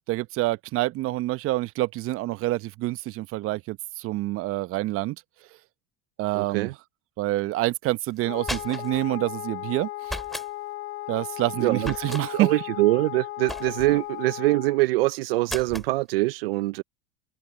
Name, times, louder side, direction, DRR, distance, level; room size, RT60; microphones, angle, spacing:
voice 1, 0.1-5.2 6.2-6.7 7.2-10.2 11.1-12.5, right 17 dB, 50° right, 1.0 m, -27 dB
voice 2, 6.3-6.7 11.6-11.9 12.3-16.8, right 20 dB, 75° right, 0.8 m, -24 dB
Wind instrument woodwind instrument, 8.2-14.8, left 17 dB, 45° left, 1.0 m, -36 dB
sound 1, 8.2-9.0 10.0-10.5 11.8-12.3 13.5-14.0 15.5-15.9, equal, ahead, 3.8 m, -35 dB
hypercardioid pair, 90°, 29 cm